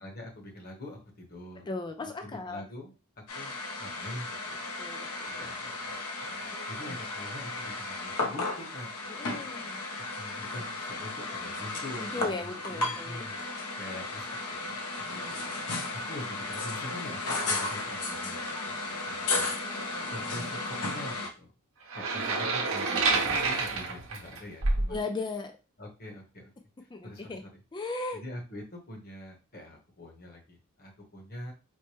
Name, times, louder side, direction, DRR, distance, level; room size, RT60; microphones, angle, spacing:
voice 1, 0.0-1.6 2.0-2.9 3.3-3.5 3.8-4.6 5.2-8.9 10.0-13.4 13.8-14.8 16.0-19.5 20.1-21.5 21.9-25.0 25.8-26.5 26.8-27.6 28.1-31.5, left 1 dB, 40° left, 1 dB, 0.9 m, -44 dB
voice 2, 1.6-2.6 4.8-5.5 6.5-6.8 9.1-9.8 12.0-13.3 15.1-15.4 24.9-25.5 26.9-27.4 27.7-28.2, left 3 dB, 20° left, 6 dB, 0.3 m, -37 dB
sound 1, 3.3-21.3, left 2 dB, 80° left, 0.7 m, -34 dB
sound 2, 21.9-24.9, right 3 dB, 65° right, 0.8 m, -28 dB
4.5 x 2.1 x 3.0 m, 0.31 s
head